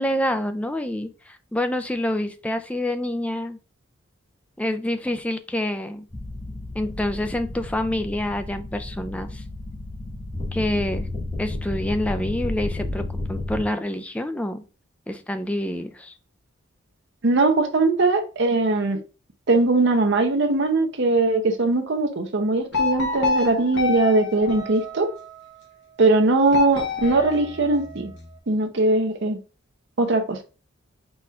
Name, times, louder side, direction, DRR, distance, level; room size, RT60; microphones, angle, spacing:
voice 1, 0.0-3.6 4.6-6.1 6.7-9.4 10.5-11.1 11.4-14.6 15.1-16.1, left 1 dB, 5° left, 0.3 m, -27 dB
sound 1, 6.1-13.6, left 2 dB, 25° left, 1.9 m, -32 dB
voice 2, 17.2-19.0 19.5-25.1 26.0-28.1 28.5-29.4 30.0-30.4, right 3 dB, 60° right, 0.7 m, -20 dB
sound 2, 22.7-25.4 26.5-28.3, left 4 dB, 60° left, 0.9 m, -28 dB
4.3 x 4.2 x 2.4 m
head